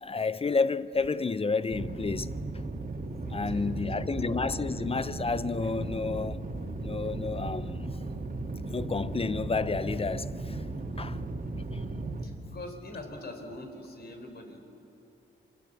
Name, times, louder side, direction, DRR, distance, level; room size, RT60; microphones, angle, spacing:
voice 1, 0.0-2.3 3.3-6.4 6.8-7.9 8.7-10.7 11.0-11.2 11.6-11.8, left 4 dB, 30° left, 0.6 m, -30 dB
sound 1, 1.7-12.2, right 2 dB, 40° right, 2.6 m, -36 dB
voice 2, 3.0-4.1 12.2-14.6, left 1 dB, 50° left, 4.0 m, -44 dB
27.5 x 23.0 x 8.1 m
cardioid pair, 95°, 20 cm